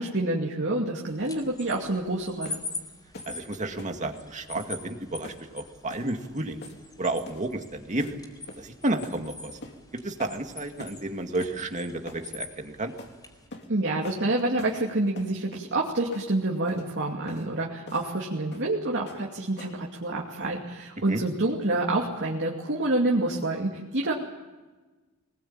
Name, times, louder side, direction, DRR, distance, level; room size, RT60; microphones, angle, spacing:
voice 1, 0.0-2.6 13.7-24.1, right 2 dB, 55° right, -2 dB, 2.6 m, -27 dB
sound 1, 1.1-13.5, left 3 dB, 20° left, 4.1 m, -44 dB
sound 2, 2.4-2.7 3.1-3.4 3.8-4.0 4.6-4.8 5.2-5.5 5.9-6.1 6.6-6.9 7.3-7.5 8.0-8.2 8.5-8.7 9.0-9.2 9.6-9.8 10.2-10.4 10.8-11.0 11.4-11.6 12.1-12.3 13.0-13.1 13.5-13.7 14.0-14.2 14.6-14.8 15.2-15.7 16.1-16.3 16.7-16.9 17.3-17.5 17.9-18.1 18.5-18.7 19.1-19.3 19.6-19.9, left 2 dB, 50° left, 3.0 m, -44 dB
voice 2, 3.3-6.6 7.0-8.2 8.6-9.6 10.0-12.9 21.1-21.2, right 2 dB, 35° right, 5 dB, 2.1 m, -31 dB
24.0 x 20.0 x 8.9 m, 1.2 s
head